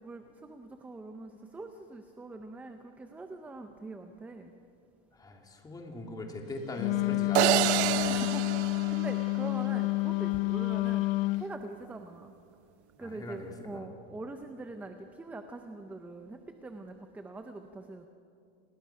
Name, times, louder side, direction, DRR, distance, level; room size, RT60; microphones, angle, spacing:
voice 1, 0.0-4.5 7.9-11.1 11.4-12.3 13.0-18.1, right 2 dB, 5° right, 6 dB, 0.6 m, -43 dB
voice 2, 5.1-8.0 13.0-13.9, left 2 dB, 10° left, 2 dB, 2.4 m, -41 dB
Wind instrument woodwind instrument, 6.8-11.5, left 22 dB, 60° left, 0.6 m, -29 dB
sound 1, 7.3-9.7, right 15 dB, 85° right, 0.7 m, -28 dB
28.5 x 20.5 x 5.7 m, 2.4 s
supercardioid pair, 165°, 33 cm